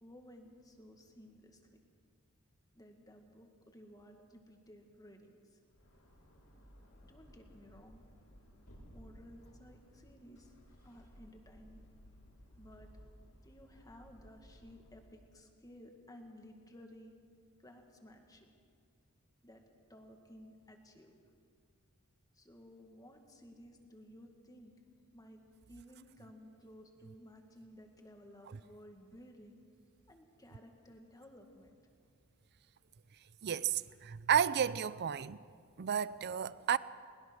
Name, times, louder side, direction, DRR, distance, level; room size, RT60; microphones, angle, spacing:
voice 1, 0.0-1.6 2.7-5.6 7.0-8.0 8.9-10.5 10.8-11.9 12.6-12.9 13.4-17.1 17.6-18.5 19.4-19.6 19.9-21.1 22.3-24.7 25.1-25.4 25.7-29.6 30.1-32.1, equal, 15° left, 2.0 m, -56 dB
sound 1, 5.6-15.1, equal, 80° left, 6.6 m, -59 dB
voice 2, 33.4-35.4 35.8-36.8, right 8 dB, 50° right, 0.5 m, -32 dB
21.5 x 20.0 x 6.3 m
head